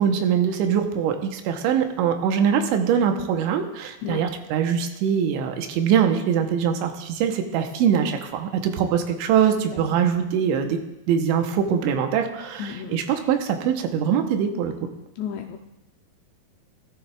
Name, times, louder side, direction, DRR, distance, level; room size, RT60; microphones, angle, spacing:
voice 1, 0.0-10.8 11.1-14.7, right 8 dB, 85° right, 5 dB, 3.1 m, -23 dB
voice 2, 9.5-10.1 12.6-13.0 15.2-15.6, left 8 dB, 80° left, 3 dB, 2.6 m, -34 dB
19.5 x 13.0 x 2.4 m, 0.95 s
omnidirectional pair, 5.4 m